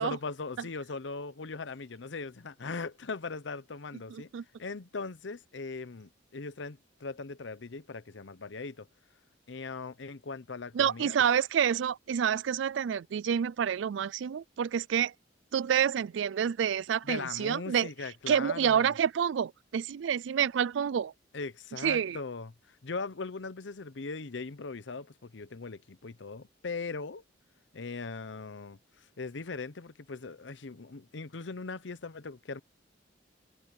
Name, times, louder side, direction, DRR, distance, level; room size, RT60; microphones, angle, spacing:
voice 1, 0.0-4.3 4.6-8.9 9.5-11.1 17.0-18.9 21.3-27.2 27.7-32.6, left 4 dB, 70° left, 0.8 m, -39 dB
voice 2, 4.1-4.4 10.7-15.1 15.5-17.9 18.3-21.1 21.8-22.2, right 8 dB, 75° right, 0.4 m, -28 dB
head